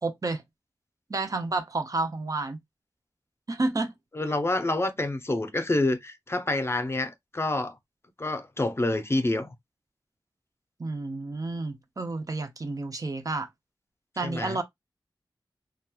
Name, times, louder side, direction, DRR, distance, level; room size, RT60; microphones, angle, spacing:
voice 1, 0.0-0.4 1.1-2.6 3.5-3.9 10.8-13.5 14.2-14.6, right 3 dB, 45° right, 0.6 m, -30 dB
voice 2, 4.1-7.7 8.2-9.5 14.2-14.6, left 2 dB, 30° left, 0.5 m, -27 dB
2.9 x 2.3 x 2.2 m
wide cardioid pair, 55°, 8 cm